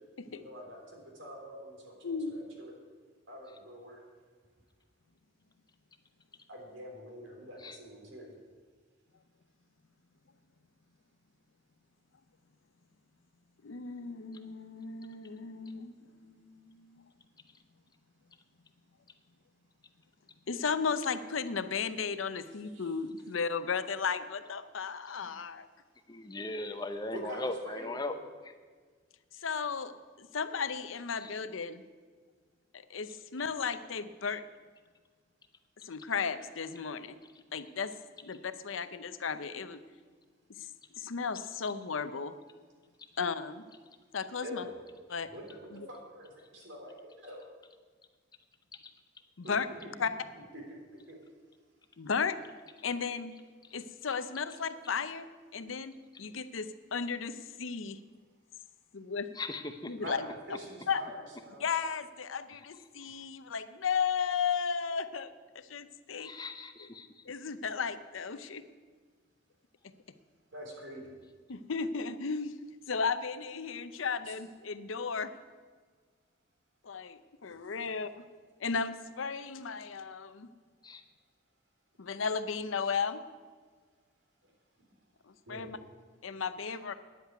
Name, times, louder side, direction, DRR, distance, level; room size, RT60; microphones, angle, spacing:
voice 1, 0.2-2.7 3.3-4.0 6.5-8.3 22.7-22.9 27.1-28.2 44.4-44.8 45.2-47.5 49.4-49.5 49.8-50.0 50.7-50.8 51.1-51.2 60.0-61.7 70.5-71.2 74.3-74.4 77.8-77.9 78.2-78.3 84.4-84.5 85.5-85.7, equal, 75° right, 0 dB, 3.4 m, -46 dB
voice 2, 2.0-2.4 13.6-17.1 20.5-25.7 29.3-29.9 30.2-31.8 32.7-34.4 35.8-37.1 37.5-37.9 38.2-39.8 40.6-40.7 40.9-42.3 43.2-43.6 44.1-44.7 45.1-45.3 45.7-45.9 49.4-49.7 50.0-50.1 52.0-52.4 52.8-53.3 53.7-55.3 55.5-55.9 56.2-58.0 58.9-59.3 59.9-60.3 60.9-61.0 61.6-66.3 67.3-68.6 71.5-72.6 72.9-75.3 76.8-78.2 78.6-80.5 82.0-83.2 85.5-85.8 86.2-86.9, left 5 dB, 85° left, 12 dB, 0.7 m, -35 dB
voice 3, 26.1-28.1 31.2-31.3 59.3-59.9 63.0-63.1 66.2-67.2 80.8-81.0, left 2 dB, 20° left, 8 dB, 0.6 m, -38 dB
9.8 x 8.2 x 9.4 m, 1.5 s
head